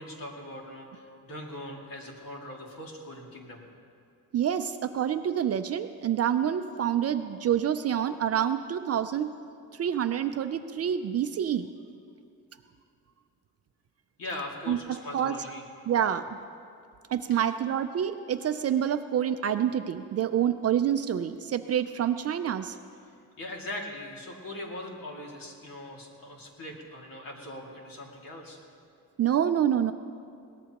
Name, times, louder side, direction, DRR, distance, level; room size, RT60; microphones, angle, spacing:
voice 1, 0.0-3.7 14.2-15.6 17.3-17.5 23.4-28.6, left 1 dB, 65° left, -1 dB, 2.3 m, -41 dB
voice 2, 4.3-9.3 9.8-11.7 14.7-15.3 15.9-16.2 17.1-22.7 29.2-29.9, right 9 dB, 45° right, 9 dB, 0.4 m, -27 dB
22.0 x 18.0 x 3.0 m, 2.4 s
wide cardioid pair, 175°, 36 cm